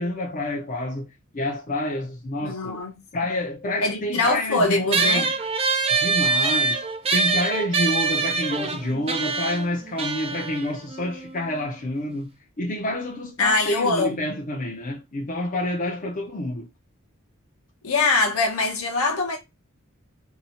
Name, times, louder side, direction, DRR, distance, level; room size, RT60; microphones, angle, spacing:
voice 1, 0.0-2.8 3.1-5.3 6.0-6.8 7.1-12.3 12.6-16.7, left 1 dB, 40° left, 0.6 m, -28 dB
voice 2, 2.4-3.0 3.8-5.3 13.4-14.4 17.8-19.4, left 3 dB, 70° left, 0.9 m, -23 dB
sound 1, 4.9-11.7, right 4 dB, 25° right, 0.4 m, -25 dB
2.7 x 2.3 x 2.8 m
head